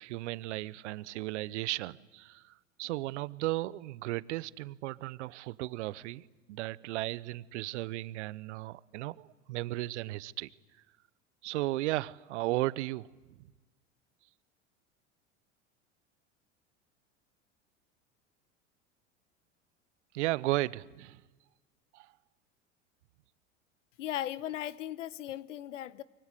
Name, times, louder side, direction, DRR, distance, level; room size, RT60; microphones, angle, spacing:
voice 1, 0.0-10.5 11.4-13.1 13.4-13.5 20.1-21.2 21.9-22.1, right 18 dB, 70° right, 0.9 m, -35 dB
voice 2, 24.0-26.0, left 12 dB, 75° left, 1.1 m, -37 dB
24.0 x 23.5 x 8.3 m
hypercardioid pair, 80°, 37 cm